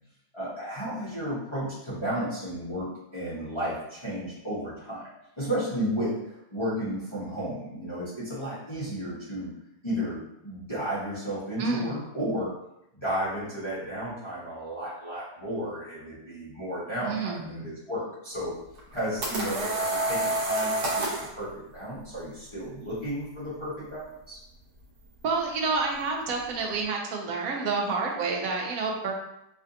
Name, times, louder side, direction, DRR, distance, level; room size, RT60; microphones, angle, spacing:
voice 1, 0.3-5.0 5.4-9.5 9.8-12.5 12.9-18.5 18.9-24.4, equal, 25° left, -11 dB, 0.8 m, -33 dB
voice 2, 11.6-12.0 17.0-17.7 25.2-29.1, right 4 dB, 70° right, 0 dB, 1.0 m, -29 dB
sound 1, 18.8-21.3, right 2 dB, 90° right, 1.4 m, -28 dB
3.2 x 2.6 x 2.6 m, 0.82 s
omnidirectional pair, 1.6 m